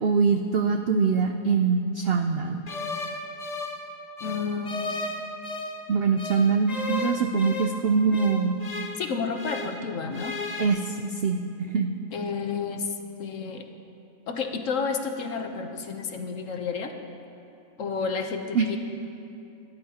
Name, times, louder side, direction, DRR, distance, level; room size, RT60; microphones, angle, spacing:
voice 1, 0.0-2.6 5.9-8.6 10.6-12.0 18.5-18.8, right 5 dB, 80° right, 5 dB, 0.5 m, -23 dB
sound 1, 2.7-5.8 6.2-9.8 10.1-10.7, left 2 dB, 35° left, 0.7 m, -34 dB
voice 2, 4.2-5.1 9.0-10.4 12.1-13.7 14.3-16.9 17.8-18.8, left 5 dB, 55° left, 5 dB, 1.1 m, -31 dB
23.5 x 13.0 x 2.9 m, 2.7 s
omnidirectional pair, 1.7 m